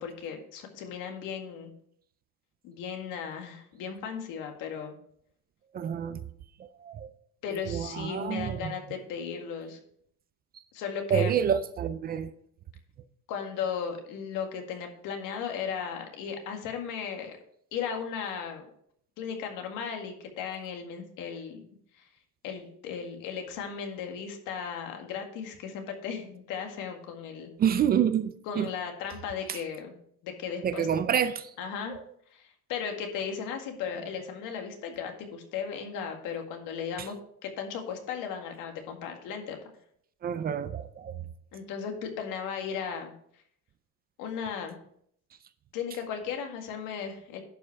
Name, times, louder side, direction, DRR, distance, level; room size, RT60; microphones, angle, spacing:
voice 1, 0.0-1.7 2.6-4.9 7.4-9.8 10.7-11.3 13.3-17.4 17.7-18.7 19.2-21.6 21.9-22.0 22.4-27.5 28.5-29.9 30.2-30.9 31.6-32.0 32.3-37.2 37.4-39.6 41.5-43.1 44.2-44.8 45.7-47.4, left 7 dB, 85° left, 3 dB, 1.9 m, -36 dB
voice 2, 5.7-6.2 6.8-7.1 7.7-8.8 11.1-12.3 27.6-28.7 29.5-29.6 30.6-31.5 31.9-32.0 40.2-41.1, right 8 dB, 30° right, 13 dB, 0.4 m, -28 dB
11.0 x 5.4 x 4.6 m, 0.67 s
cardioid pair, 165°, 31 cm